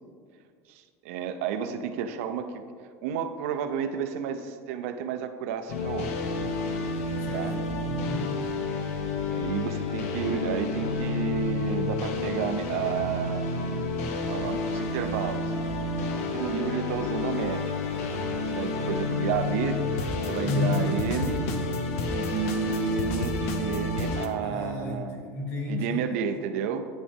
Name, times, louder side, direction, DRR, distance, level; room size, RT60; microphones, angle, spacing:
voice 1, 0.7-2.6 3.0-6.1 7.3-7.6 9.3-13.6 14.3-15.5 16.2-17.7 18.4-21.4 22.1-25.2 25.7-26.9, right 7 dB, 70° right, 8 dB, 0.6 m, -31 dB
sound 1, 5.7-24.3, left 3 dB, 85° left, 0.9 m, -30 dB
voice 2, 7.2-8.4 20.4-21.0 24.4-26.1, left 3 dB, 40° left, 0 dB, 1.7 m, -31 dB
11.0 x 6.0 x 3.5 m, 2.1 s
cardioid pair, 175°, 8 cm